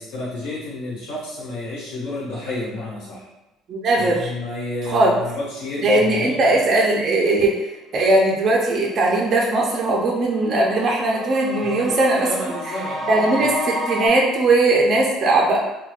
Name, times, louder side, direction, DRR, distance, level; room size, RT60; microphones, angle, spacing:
voice 1, 0.0-3.3 4.0-6.5 11.6-13.5, left 2 dB, 90° left, -6 dB, 1.1 m, -31 dB
voice 2, 3.7-4.3 4.9-5.1 5.8-12.3 12.7-12.8 13.1-15.6, right 2 dB, 40° right, -2 dB, 0.4 m, -19 dB
sound 1, 8.3-8.4 8.7-14.1, equal, 25° left, 0.5 m, -31 dB
3.2 x 2.2 x 2.3 m, 0.98 s
cardioid pair, 150°, 0 cm